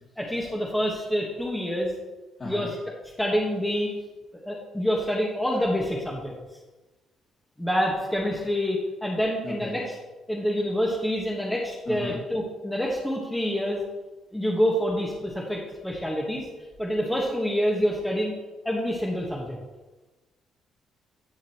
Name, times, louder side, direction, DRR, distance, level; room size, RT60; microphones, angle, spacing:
voice 1, 0.2-1.9 2.4-2.8 3.2-3.9 4.4-6.3 7.6-10.0 10.3-13.8 14.3-16.5 16.8-18.3 18.6-19.6, equal, 5° left, -3 dB, 1.4 m, -27 dB
voice 2, 11.9-12.2, left 2 dB, 40° left, -4 dB, 2.8 m, -35 dB
10.5 x 5.9 x 3.0 m, 1.2 s
hypercardioid pair, 55°, 0 cm